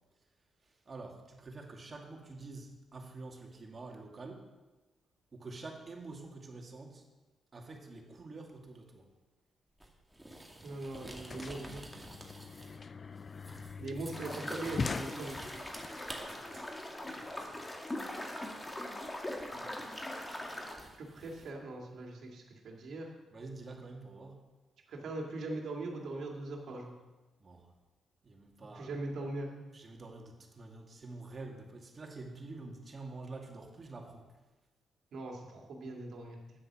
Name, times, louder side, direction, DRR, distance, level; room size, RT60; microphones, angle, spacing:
voice 1, 0.6-4.5 5.3-7.0 7.5-9.1 16.1-16.7 17.2-17.7 19.4-19.9 23.3-24.4 27.4-27.7 28.2-28.9 29.7-34.3, right 3 dB, 40° right, 1 dB, 2.3 m, -48 dB
sound 1, 9.8-12.9 13.1-16.2 19.4-19.5 20.8-21.5, right 1 dB, 10° right, 2.2 m, -49 dB
sound 2, 10.4-10.5 10.7-15.9, left 5 dB, 45° left, 0.4 m, -42 dB
voice 2, 10.6-11.8 13.8-15.4 21.0-23.1 24.9-26.9 28.8-29.7 35.1-36.4, right 2 dB, 70° right, 1 dB, 2.4 m, -41 dB
sound 3, 14.1-20.8, left 1 dB, 20° left, 2.2 m, -41 dB
9.9 x 7.7 x 6.2 m, 1.2 s
supercardioid pair, 60°, 0 cm